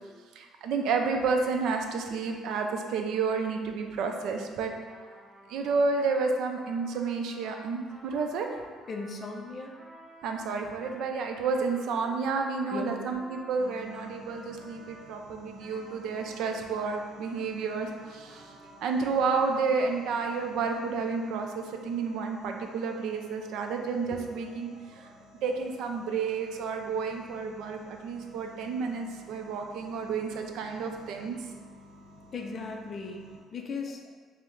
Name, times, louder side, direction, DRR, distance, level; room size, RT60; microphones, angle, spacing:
voice 1, 0.3-4.7 5.5-8.6 10.2-18.5 18.8-31.5, right 4 dB, 70° right, 4 dB, 0.4 m, -31 dB
Trumpet, 4.9-15.1 15.6-19.4, right 1 dB, 25° right, 1.4 m, -52 dB
voice 2, 8.9-9.8 12.7-13.1 32.3-34.1, left 4 dB, 35° left, 3 dB, 0.4 m, -37 dB
sound 1, 13.6-33.4, left 1 dB, 90° right, 0.8 m, -53 dB
5.5 x 2.0 x 3.1 m, 1.5 s
cardioid pair, 145°, 0 cm